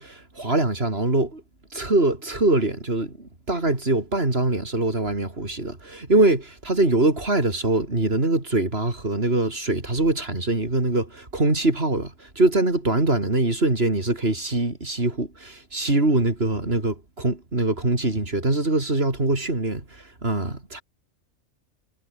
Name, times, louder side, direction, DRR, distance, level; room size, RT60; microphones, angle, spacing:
voice 1, 0.0-1.4 1.7-20.8, right 2 dB, 50° right, 4.7 m, -23 dB
omnidirectional pair, 1.3 m